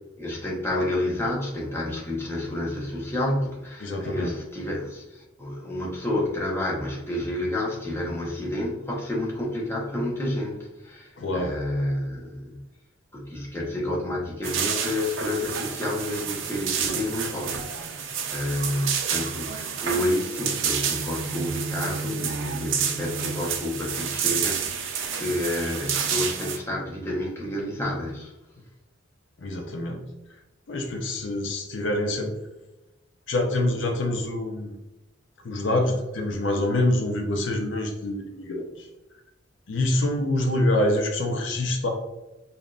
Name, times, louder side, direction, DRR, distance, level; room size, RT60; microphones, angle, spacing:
voice 1, 0.2-12.6 13.1-28.3, left 1 dB, 15° left, -4 dB, 0.9 m, -30 dB
voice 2, 3.8-4.4 11.2-11.5 29.4-30.1 30.7-32.4 33.3-34.7 35.4-38.9 39.7-41.9, left 1 dB, 65° left, 2 dB, 0.6 m, -26 dB
sound 1, 14.4-26.6, right 7 dB, 75° right, 0.5 m, -29 dB
5.2 x 2.7 x 2.4 m, 1.0 s
head